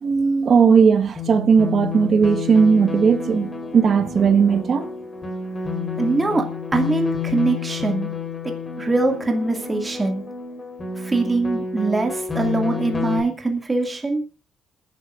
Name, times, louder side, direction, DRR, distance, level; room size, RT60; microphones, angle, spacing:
voice 1, 0.0-4.9, right 6 dB, 50° right, 1.4 m, -17 dB
sound 1, 1.1-13.2, left 5 dB, 25° left, 3.8 m, -30 dB
voice 2, 6.0-6.5 6.7-8.1 8.4-10.2 11.0-14.2, right 2 dB, 25° right, 2.2 m, -22 dB
27.0 x 10.5 x 2.5 m
cardioid pair, 90°, 0 cm